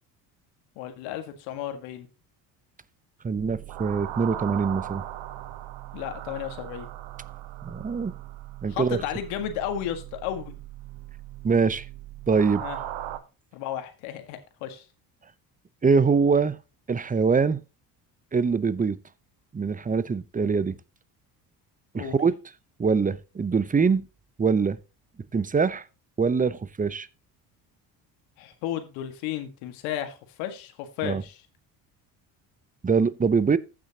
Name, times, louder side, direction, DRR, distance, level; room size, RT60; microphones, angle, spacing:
voice 1, 0.7-2.1 5.9-6.9 8.7-10.6 12.6-12.8 13.5-14.8 21.9-22.2 28.4-31.4, left 10 dB, 80° left, 1.8 m, -33 dB
voice 2, 3.2-5.0 7.6-8.1 8.6-9.0 11.4-11.9 12.3-12.6 15.8-16.6 16.9-17.6 18.3-19.0 19.5-20.8 21.9-22.3 22.8-24.0 24.4-24.8 25.3-25.8 26.2-27.1 31.0-31.2 32.8-33.6, right 5 dB, 15° right, 0.7 m, -23 dB
sound 1, 3.4-13.2, right 12 dB, 65° right, 1.3 m, -39 dB
15.0 x 6.1 x 2.9 m
hypercardioid pair, 65°, 47 cm